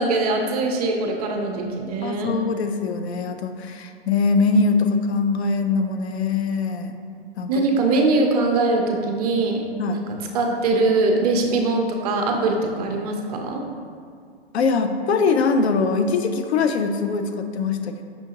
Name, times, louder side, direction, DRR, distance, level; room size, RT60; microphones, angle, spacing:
voice 1, 0.0-2.3 7.5-10.0 10.3-13.6, right 3 dB, 40° right, 2 dB, 0.4 m, -22 dB
voice 2, 2.0-7.0 7.4-7.6 9.8-10.0 14.5-18.0, left 4 dB, 85° left, 7 dB, 0.5 m, -22 dB
5.5 x 2.6 x 2.8 m, 2.2 s
hypercardioid pair, 140°, 32 cm